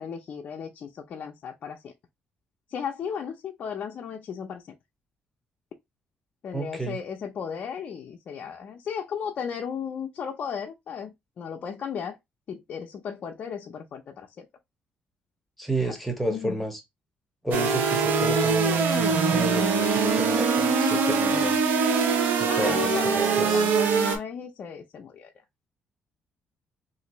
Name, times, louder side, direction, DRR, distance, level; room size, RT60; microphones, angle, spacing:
voice 1, 0.0-1.9 2.7-4.6 6.4-12.2 12.5-14.5 15.9-16.0 16.3-16.6 22.5-25.3, left 7 dB, 50° left, 0.5 m, -35 dB
voice 2, 6.5-7.0 15.6-16.8 17.4-21.6 22.4-23.7, right 1 dB, 5° left, 0.8 m, -32 dB
sound 1, 17.5-24.2, right 5 dB, 75° right, 0.7 m, -23 dB
3.1 x 2.6 x 3.0 m
cardioid pair, 135°, 3 cm